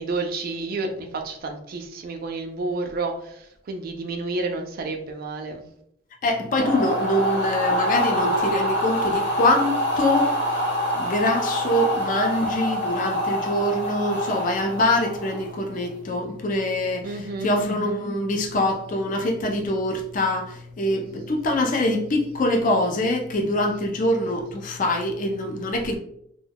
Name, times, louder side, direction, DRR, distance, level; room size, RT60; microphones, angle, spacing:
voice 1, 0.0-3.1 3.7-5.6 17.0-17.5, right 3 dB, 50° right, 0.3 m, -30 dB
voice 2, 6.2-26.0, left 1 dB, 40° left, 0.4 m, -24 dB
sound 1, 6.5-15.6, equal, 60° left, 0.8 m, -25 dB
2.2 x 2.2 x 3.3 m
head